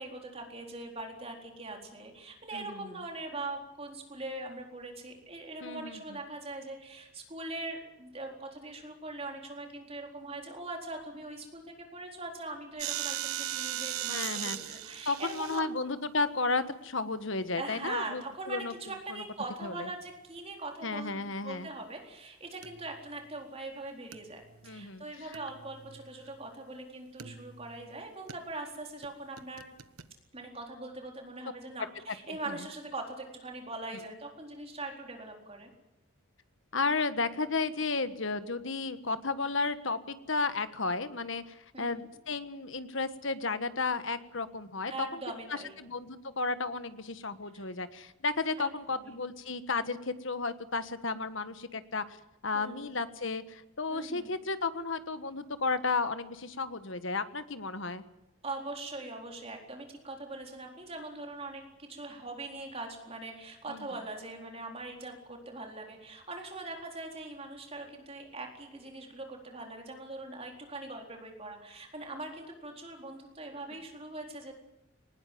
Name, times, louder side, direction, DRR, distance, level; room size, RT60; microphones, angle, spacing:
voice 1, 0.0-15.6 17.5-29.7 30.3-35.7 41.7-42.1 44.9-45.8 47.5-47.7 48.6-48.7 49.0-49.2 52.5-53.0 53.9-54.3 58.4-74.5, right 2 dB, 25° right, 2 dB, 4.1 m, -42 dB
voice 2, 2.5-2.9 5.6-6.2 14.1-14.6 15.0-18.7 19.1-19.2 19.6-19.9 20.8-21.7 24.6-25.0 32.1-32.7 36.7-45.2 45.5-52.2 52.4-58.0 63.7-63.9, left 3 dB, 60° left, 12 dB, 1.4 m, -33 dB
sound 1, 12.8-15.6 19.6-19.8 22.6-22.9 24.1-24.2 24.6-24.7 25.3-26.3 27.2-27.8 28.3-28.4 29.0-29.1 29.4-30.0, right 11 dB, 80° right, 1.2 m, -38 dB
20.0 x 19.5 x 9.4 m, 0.88 s
head